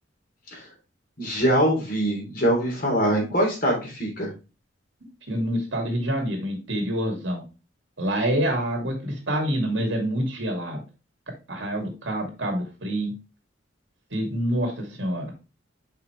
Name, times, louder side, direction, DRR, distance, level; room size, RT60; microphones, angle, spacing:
voice 1, 1.2-4.3, equal, 50° left, 0 dB, 3.1 m, -23 dB
voice 2, 5.3-7.4 8.0-10.8 11.5-13.1 14.1-15.3, right 1 dB, 65° right, 2 dB, 2.5 m, -27 dB
6.0 x 5.7 x 3.2 m, 0.30 s
head